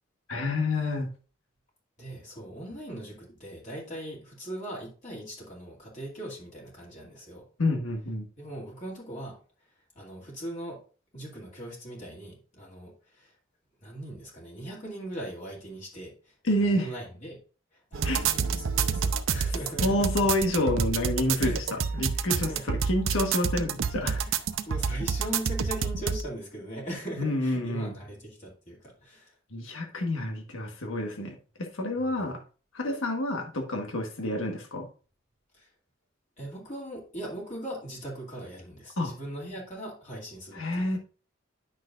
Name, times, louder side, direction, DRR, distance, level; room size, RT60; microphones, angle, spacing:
voice 1, 0.3-1.1 7.6-8.3 16.4-16.9 18.0-18.2 19.3-19.4 19.8-24.2 27.2-27.9 29.5-32.4 32.7-34.9 39.0-39.1 40.5-41.0, left 1 dB, 85° left, 2 dB, 1.4 m, -28 dB
voice 2, 2.0-7.5 8.4-9.4 9.9-10.8 11.1-13.4 13.8-16.3 16.6-17.4 17.7-20.3 21.4-21.8 22.1-22.8 24.1-29.4 32.0-32.3 35.5-35.7 36.4-41.0, right 1 dB, 40° left, -4 dB, 2.4 m, -40 dB
sound 1, 17.9-26.2, right 6 dB, 85° right, 0.7 m, -28 dB
10.5 x 6.1 x 2.5 m, 0.36 s
head